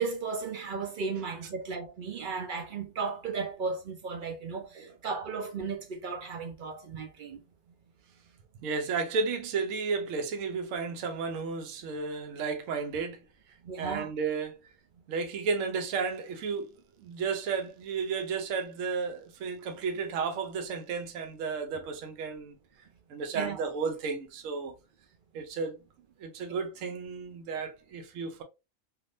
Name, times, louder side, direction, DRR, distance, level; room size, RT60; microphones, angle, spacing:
voice 1, 0.0-7.4 13.6-14.1 23.3-23.6, right 5 dB, 60° right, 0.5 m, -35 dB
voice 2, 8.6-13.2 13.8-14.6 15.1-16.7 17.0-22.6 23.1-24.7 25.3-25.8 26.2-28.4, right 5 dB, 80° right, 1.0 m, -33 dB
3.4 x 2.5 x 2.5 m
omnidirectional pair, 1.3 m